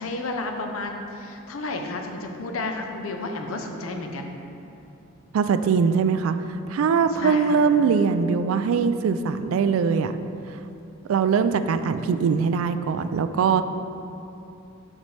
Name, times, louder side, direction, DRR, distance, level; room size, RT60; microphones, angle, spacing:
voice 1, 0.0-4.3 7.2-7.7, left 2 dB, 90° left, 4 dB, 0.6 m, -32 dB
voice 2, 5.3-6.4 6.7-10.1 11.1-13.6, right 6 dB, 80° right, 10 dB, 0.3 m, -21 dB
7.2 x 5.3 x 3.2 m, 2.7 s
head